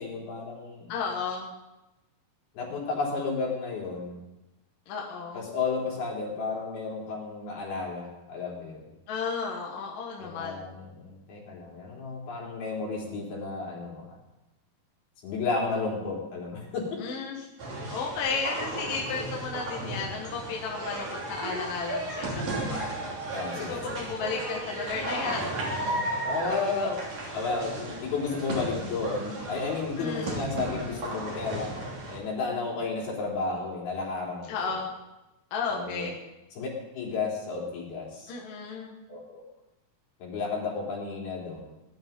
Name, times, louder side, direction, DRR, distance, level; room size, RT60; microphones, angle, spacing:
voice 1, 0.0-0.9 2.6-4.2 5.3-8.8 10.2-14.2 15.2-17.2 23.3-24.0 26.3-27.1 27.3-34.8 35.7-36.1 36.5-36.7 36.9-38.3 39.1-39.4 40.2-41.7, left 4 dB, 85° left, -4 dB, 5.8 m, -32 dB
voice 2, 0.9-1.5 4.9-5.5 9.1-10.7 17.0-17.5 17.9-22.9 23.5-26.2 26.5-27.0 30.0-30.4 34.5-34.9 35.5-36.2 38.3-39.0, left 5 dB, 65° left, -2 dB, 3.2 m, -34 dB
sound 1, 17.6-32.2, right 1 dB, 45° right, 4.1 m, -34 dB
19.5 x 11.5 x 5.3 m, 0.99 s
omnidirectional pair, 4.3 m